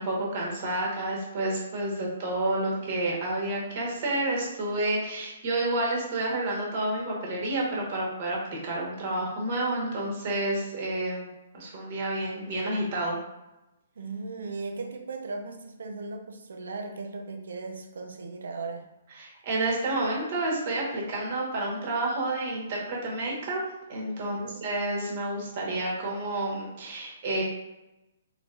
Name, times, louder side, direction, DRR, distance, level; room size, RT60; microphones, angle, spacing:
voice 1, 0.0-13.2 19.2-23.6 23.9-27.4, right 2 dB, 45° right, -3 dB, 1.3 m, -30 dB
voice 2, 14.0-18.8 24.2-24.6, right 3 dB, 65° right, 3 dB, 0.6 m, -37 dB
3.9 x 3.1 x 2.5 m, 0.95 s
figure-of-eight pair, 125°, 0 cm